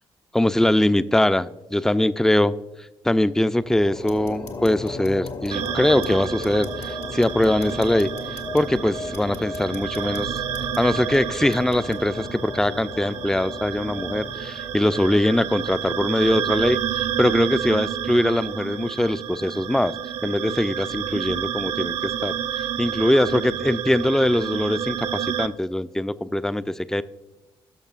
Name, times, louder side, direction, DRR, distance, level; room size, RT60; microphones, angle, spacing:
voice 1, 0.3-2.5 3.0-8.1 8.5-10.3 10.8-19.9 20.2-22.3 22.8-27.0, left 1 dB, 5° left, 14 dB, 0.4 m, -22 dB
sound 1, 3.6-16.2, left 3 dB, 35° left, 0.7 m, -36 dB
sound 2, 4.0-12.0, left 5 dB, 75° left, 1.1 m, -48 dB
sound 3, 5.5-25.5, right 9 dB, 55° right, 0.6 m, -30 dB
16.5 x 6.6 x 2.4 m, 1.1 s
hypercardioid pair, 40°, 13 cm